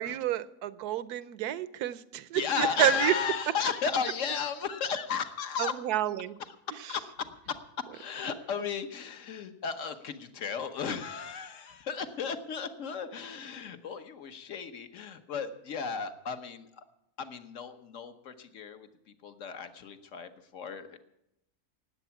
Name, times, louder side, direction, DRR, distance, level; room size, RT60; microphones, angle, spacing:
voice 1, 0.0-3.1 5.6-6.4, right 12 dB, 80° right, 16 dB, 1.2 m, -29 dB
voice 2, 2.3-5.7 6.4-16.8 17.2-21.0, left 6 dB, 55° left, 9 dB, 1.4 m, -35 dB
18.0 x 8.5 x 7.0 m, 0.83 s
omnidirectional pair, 1.6 m